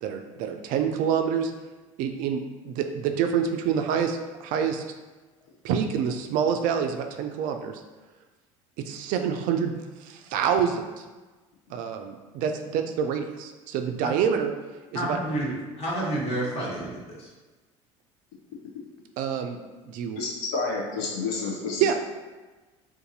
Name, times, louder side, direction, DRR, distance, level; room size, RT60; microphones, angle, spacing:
voice 1, 0.0-1.5 2.0-4.8 5.6-7.8 8.8-9.7 10.0-11.0 11.7-14.5 14.9-15.2 19.2-19.6 19.8-20.2 21.8-21.9, right 7 dB, 55° right, 5 dB, 0.4 m, -27 dB
voice 2, 14.9-17.3, right 1 dB, 40° left, -5 dB, 1.4 m, -30 dB
voice 3, 20.1-21.9, left 4 dB, 65° left, -2 dB, 0.8 m, -30 dB
2.6 x 2.6 x 3.9 m, 1.2 s
hypercardioid pair, 70°, 16 cm